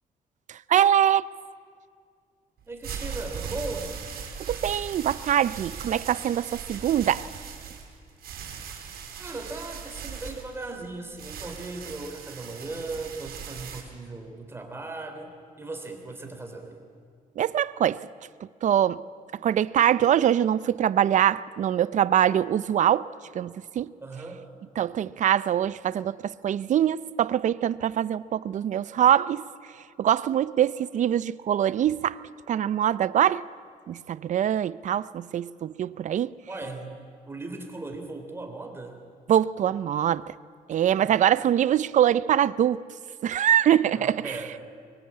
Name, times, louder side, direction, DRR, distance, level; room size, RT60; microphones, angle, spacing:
voice 1, 0.5-1.3 4.5-7.3 17.4-18.0 18.6-19.0 19.4-23.1 23.3-23.9 24.8-29.4 30.0-32.2 32.5-33.5 33.9-36.3 39.3-40.3 40.7-42.8 43.2-44.4, right 10 dB, 55° right, 0.6 m, -23 dB
sound 1, 2.6-13.8, right 6 dB, 85° right, 4.3 m, -39 dB
voice 2, 2.7-3.9 9.2-15.3 15.6-16.8 24.0-24.5 36.5-37.0 37.3-39.0 40.8-41.1 44.0-44.7, right 3 dB, 15° right, 3.5 m, -37 dB
24.5 x 22.0 x 8.7 m
cardioid pair, 140°, 15 cm